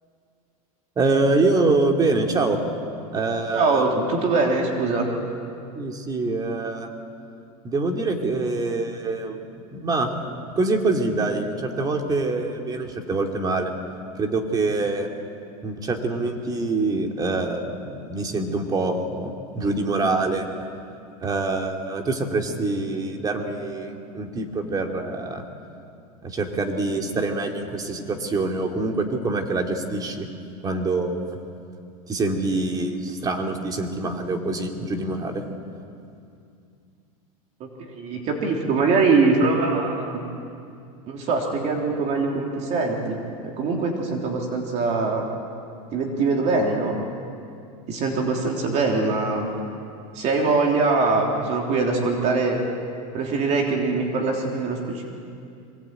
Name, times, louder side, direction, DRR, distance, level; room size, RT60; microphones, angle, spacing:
voice 1, 1.0-2.6 3.1-4.1 5.7-6.9 7.6-9.4 9.7-10.1 10.5-13.7 14.2-15.1 15.6-20.5 21.2-25.5 26.2-30.3 30.6-31.3 32.1-35.4, right 3 dB, 20° right, 3 dB, 2.6 m, -25 dB
voice 2, 3.5-5.1 37.6-40.2 41.1-45.2 45.9-47.0 47.9-49.5 50.1-52.6 53.1-55.0, right 3 dB, 40° right, 0 dB, 3.4 m, -23 dB
23.0 x 19.0 x 9.1 m, 2.5 s
supercardioid pair, 140°, 18 cm